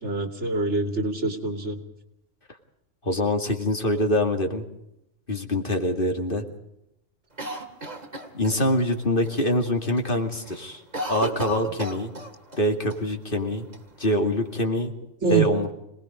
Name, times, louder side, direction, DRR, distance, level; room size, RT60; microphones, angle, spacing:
voice 1, 0.0-1.8 15.2-15.5, right 3 dB, 70° right, 5 dB, 2.8 m, -25 dB
voice 2, 3.0-4.6 5.3-6.4 8.3-10.8 11.1-12.1 12.6-13.7 14.0-14.9 15.3-15.7, equal, 45° left, 4 dB, 2.6 m, -24 dB
Cough, 7.4-8.9 9.2-9.3 9.7-10.1 10.4-12.6 12.9-13.0 13.7-14.5, right 1 dB, 35° right, 2.3 m, -34 dB
26.5 x 19.5 x 5.2 m, 0.82 s
omnidirectional pair, 1.2 m